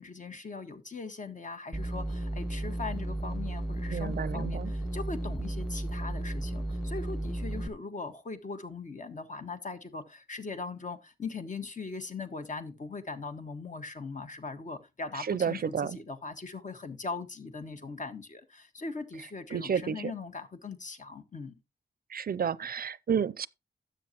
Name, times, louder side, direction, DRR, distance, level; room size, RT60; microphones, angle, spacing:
voice 1, 0.0-21.5, left 4 dB, 45° left, 1.5 m, -40 dB
sound 1, 1.7-7.7, right 1 dB, ahead, 1.1 m, -34 dB
voice 2, 3.9-4.7 15.3-16.0 19.5-20.1 22.1-23.5, right 7 dB, 55° right, 0.5 m, -31 dB
13.0 x 8.0 x 2.9 m
wide cardioid pair, 140°, 18 cm